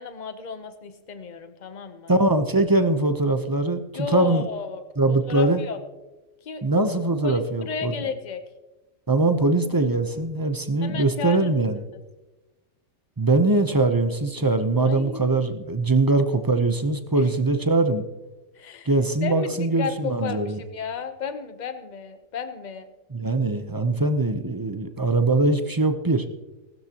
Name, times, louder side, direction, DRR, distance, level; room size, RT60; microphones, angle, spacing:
voice 1, 0.0-2.1 3.9-4.8 5.1-5.8 6.4-6.6 7.2-8.4 10.8-11.5 11.9-12.0 14.8-15.4 17.1-17.3 18.5-18.9 19.2-22.9, left 5 dB, 40° left, 9 dB, 1.0 m, -33 dB
voice 2, 2.1-4.5 5.0-5.6 6.6-7.9 9.1-11.8 13.2-18.0 18.9-20.6 23.1-26.2, right 2 dB, 20° right, 8 dB, 0.6 m, -22 dB
19.0 x 12.5 x 2.9 m, 1.1 s
omnidirectional pair, 1.3 m